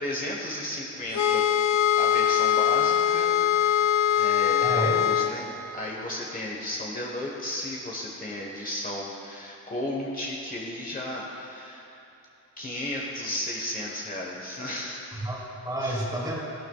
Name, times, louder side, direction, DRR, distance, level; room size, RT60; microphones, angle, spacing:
voice 1, 0.0-1.4 2.0-3.3 4.2-11.8 12.6-15.2 15.8-16.1, left 1 dB, 30° left, -3 dB, 1.4 m, -34 dB
sound 1, 1.1-5.3, left 10 dB, 70° left, 0.6 m, -22 dB
voice 2, 4.6-5.0 15.1-16.4, right 1 dB, 15° right, -4 dB, 2.6 m, -30 dB
14.0 x 12.0 x 2.4 m, 2.9 s
cardioid pair, 95°, 30 cm